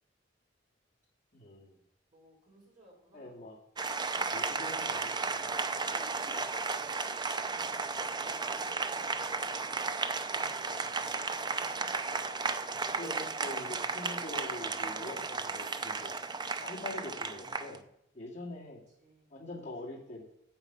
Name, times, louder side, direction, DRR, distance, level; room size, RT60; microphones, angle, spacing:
voice 1, 1.3-1.8 3.1-3.6 4.3-5.5 11.0-11.2 13.0-17.8 18.1-18.8 19.3-20.2, left 2 dB, 40° left, -4 dB, 2.4 m, -44 dB
voice 2, 2.1-3.3 8.0-10.9 19.0-19.3, right 1 dB, 40° right, -2 dB, 4.9 m, -61 dB
Applause, 3.8-17.8, right 4 dB, 25° right, 0.6 m, -34 dB
9.0 x 8.3 x 5.9 m, 0.79 s
head